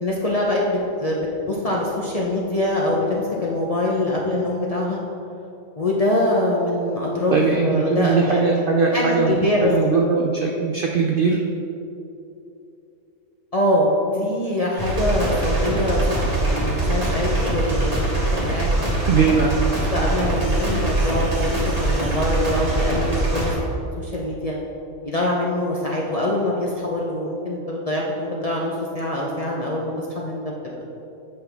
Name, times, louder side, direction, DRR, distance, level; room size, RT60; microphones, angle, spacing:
voice 1, 0.0-5.0 5.8-8.4 8.9-9.7 13.5-16.1 16.4-18.7 19.3-19.5 19.9-23.5 24.0-24.6 25.0-30.8, left 1 dB, 40° left, -3 dB, 0.5 m, -24 dB
voice 2, 7.3-11.4 19.1-19.6, right 5 dB, 65° right, 1 dB, 0.5 m, -20 dB
sound 1, 14.8-23.5, right 2 dB, 30° right, 1.3 m, -22 dB
7.9 x 5.5 x 3.4 m, 2.8 s
omnidirectional pair, 1.4 m